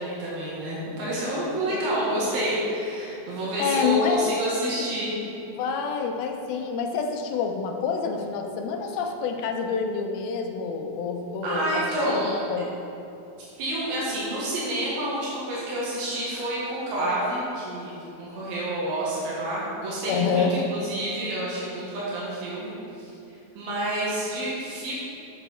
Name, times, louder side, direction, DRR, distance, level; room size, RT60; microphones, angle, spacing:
voice 1, 0.0-5.1 11.4-12.4 13.6-23.1 23.6-24.9, right 1 dB, 85° right, -7 dB, 3.3 m, -28 dB
voice 2, 3.6-4.3 5.5-11.8 12.1-12.7 20.1-20.5, left 5 dB, 90° left, 4 dB, 2.6 m, -27 dB
7.9 x 7.0 x 4.3 m, 2.9 s
omnidirectional pair, 4.2 m